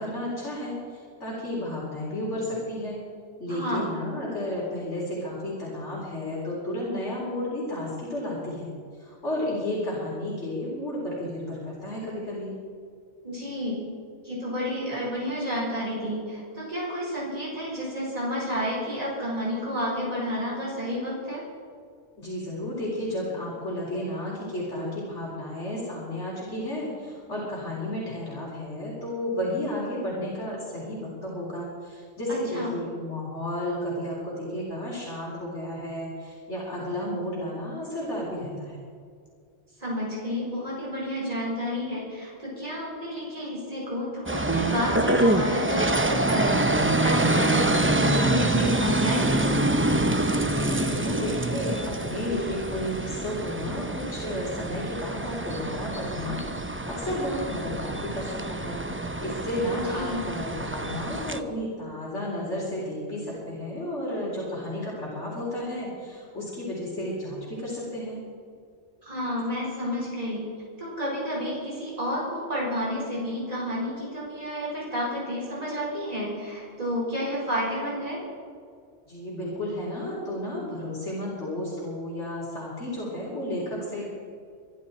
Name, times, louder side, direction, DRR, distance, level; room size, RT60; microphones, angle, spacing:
voice 1, 0.0-3.0 3.4-8.7 9.0-12.5 22.2-38.8 50.5-58.8 59.2-68.2 79.1-84.1, left 1 dB, 80° left, -6 dB, 4.3 m, -32 dB
voice 2, 3.5-3.9 13.2-13.8 14.2-21.4 32.3-32.7 39.8-49.8 59.7-60.2 69.0-70.5 70.8-78.2, equal, 35° right, -5 dB, 4.9 m, -30 dB
sound 1, 44.3-61.4, right 2 dB, 15° right, 0.5 m, -26 dB
25.5 x 11.5 x 4.4 m, 2.3 s
omnidirectional pair, 1.2 m